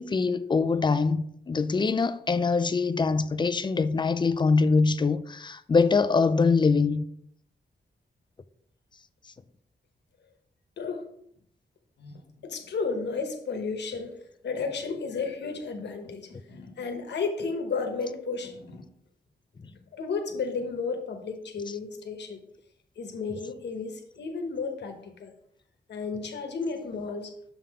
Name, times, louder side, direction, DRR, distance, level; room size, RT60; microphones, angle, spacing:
voice 1, 0.0-7.0, left 4 dB, 25° left, 0.3 m, -23 dB
voice 2, 12.0-14.1 14.4-18.9 19.9-22.4 23.0-25.3 25.9-27.3, left 4 dB, 85° left, 1.1 m, -33 dB
6.9 x 3.7 x 4.8 m
wide cardioid pair, 140°, 17 cm